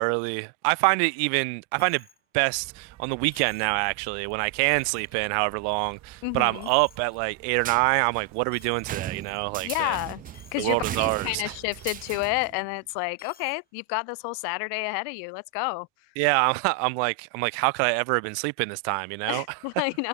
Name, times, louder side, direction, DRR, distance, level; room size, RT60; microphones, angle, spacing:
voice 1, 0.0-2.0 2.3-10.0 10.6-11.5 16.2-19.4, right 39 dB, 75° right, 0.9 m, -26 dB
Coin (dropping), 1.8-2.2 2.6-2.7 3.3-3.8 4.3-4.4 4.6-5.2 5.6-6.2 6.5-7.2 7.5-7.8 8.5-9.7 10.1-10.6 11.0-11.1 11.8-12.2 13.1-13.6, left 7 dB, 20° left, 4.4 m, -55 dB
sound 1, 2.5-12.3, right 14 dB, 40° right, 3.6 m, -51 dB
voice 2, 6.2-6.7 9.6-10.2 10.5-15.9 19.3-20.1, left 37 dB, 75° left, 1.6 m, -30 dB
sound 2, 7.6-12.6, right 11 dB, 20° right, 0.4 m, -38 dB
cardioid pair, 170°, 41 cm